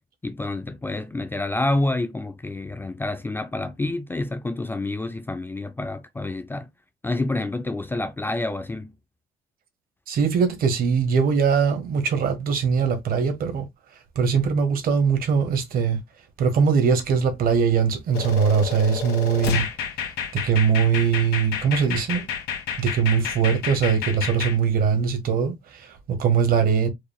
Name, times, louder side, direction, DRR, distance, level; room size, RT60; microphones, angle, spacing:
voice 1, 0.2-6.7 7.0-9.0, left 2 dB, 10° left, 0.4 m, -28 dB
voice 2, 10.1-13.7 14.1-16.0 16.4-19.7 20.3-22.3 22.8-26.9, right 6 dB, 60° right, 1.4 m, -21 dB
sound 1, 18.1-24.6, left 7 dB, 75° left, 1.5 m, -30 dB
4.8 x 3.3 x 2.3 m
cardioid pair, 110°, 17 cm